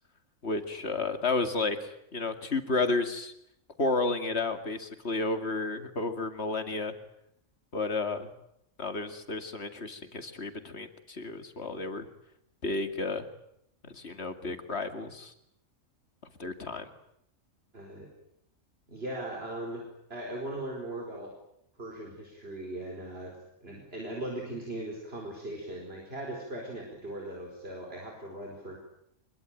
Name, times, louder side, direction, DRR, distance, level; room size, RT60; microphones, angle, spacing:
voice 1, 0.4-3.3 3.8-6.9 7.7-8.3 8.8-12.1 12.6-13.3 13.8-15.3 16.4-16.9, left 3 dB, 55° left, 8 dB, 2.6 m, -32 dB
voice 2, 17.7-18.1 18.9-19.8 20.1-21.3 21.8-23.4 23.6-28.8, right 1 dB, 50° right, 0 dB, 4.8 m, -39 dB
25.5 x 22.0 x 9.2 m, 0.76 s
omnidirectional pair, 1.4 m